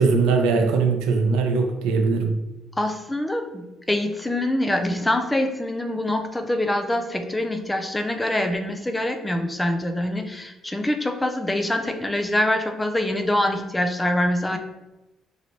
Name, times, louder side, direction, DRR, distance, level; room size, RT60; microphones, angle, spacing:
voice 1, 0.0-2.4, right 4 dB, 85° right, 4 dB, 0.4 m, -20 dB
voice 2, 2.8-14.6, left 1 dB, 15° left, 6 dB, 0.5 m, -25 dB
3.1 x 2.6 x 2.9 m, 0.99 s
supercardioid pair, 60°, 0 cm